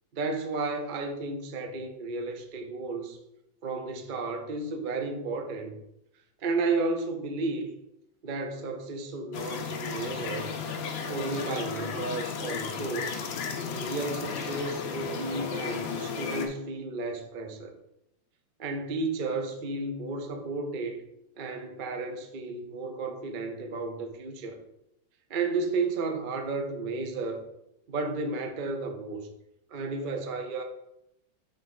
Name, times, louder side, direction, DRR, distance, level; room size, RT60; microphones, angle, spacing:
voice 1, 0.1-3.2 3.6-5.7 6.4-7.7 8.2-10.5 11.0-13.3 13.7-17.7 18.6-21.0 21.4-24.6 25.3-27.4 27.9-29.2 29.7-30.6, right 3 dB, 60° right, 4 dB, 0.5 m, -33 dB
sound 1, 9.3-16.5, left 6 dB, 90° left, 1.6 m, -34 dB
6.0 x 3.6 x 5.3 m, 0.81 s
omnidirectional pair, 2.0 m